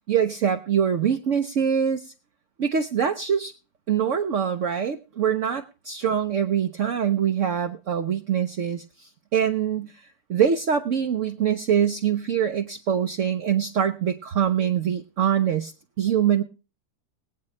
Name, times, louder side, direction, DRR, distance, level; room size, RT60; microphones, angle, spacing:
voice 1, 0.1-2.1 2.6-3.5 3.9-15.7 16.0-16.4, right 8 dB, 55° right, 4 dB, 1.0 m, -24 dB
21.0 x 8.6 x 3.2 m, 0.33 s
omnidirectional pair, 1.8 m